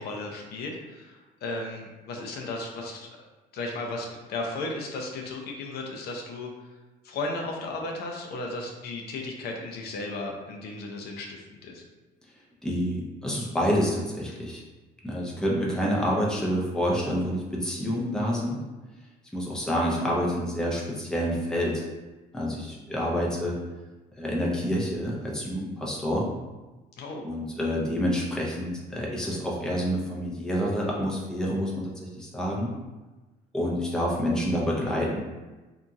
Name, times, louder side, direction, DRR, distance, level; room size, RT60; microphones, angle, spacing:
voice 1, 0.0-3.1 3.5-6.5 7.0-11.8 27.0-27.3, left 2 dB, 70° left, 1 dB, 0.5 m, -35 dB
voice 2, 12.6-14.6 15.0-18.6 19.3-21.9 22.3-23.6 24.2-26.3 27.2-32.7 33.5-35.2, equal, 5° left, -4 dB, 0.6 m, -28 dB
2.8 x 2.6 x 2.3 m, 1.2 s
cardioid pair, 110°, 17 cm